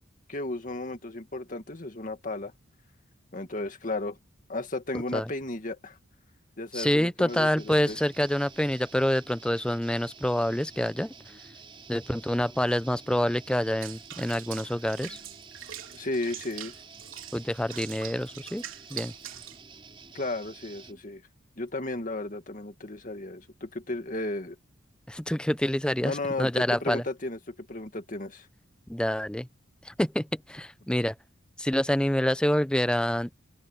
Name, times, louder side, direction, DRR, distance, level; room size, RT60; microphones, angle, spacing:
voice 1, 0.3-2.5 3.3-4.2 4.5-6.0 6.6-8.0 15.9-16.7 20.1-21.2 21.6-24.6 26.0-28.5, left 2 dB, 40° left, 2.1 m, -34 dB
voice 2, 6.7-11.1 11.9-15.2 17.3-18.6 18.9-19.1 25.1-27.0 28.9-29.5 29.8-31.1 31.6-33.3, equal, 5° left, 0.6 m, -27 dB
sound 1, 7.3-21.0, right 4 dB, 25° right, 5.3 m, -50 dB
Water / Bathtub (filling or washing), 13.8-19.6, right 11 dB, 85° right, 3.5 m, -43 dB
head